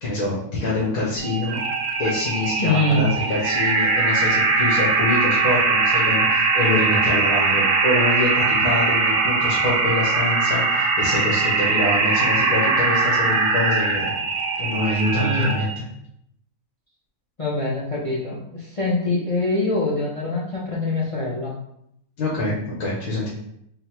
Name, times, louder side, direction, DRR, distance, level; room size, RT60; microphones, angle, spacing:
voice 1, 0.0-1.6 2.0-14.2 14.6-15.8 22.2-23.3, left 2 dB, 75° left, -6 dB, 1.4 m, -25 dB
sound 1, 1.2-15.8, right 4 dB, 60° right, 0.6 m, -21 dB
voice 2, 2.6-3.1 15.1-15.5 17.4-21.5, left 2 dB, 60° left, -4 dB, 0.3 m, -24 dB
4.0 x 2.0 x 4.3 m, 0.75 s
omnidirectional pair, 1.6 m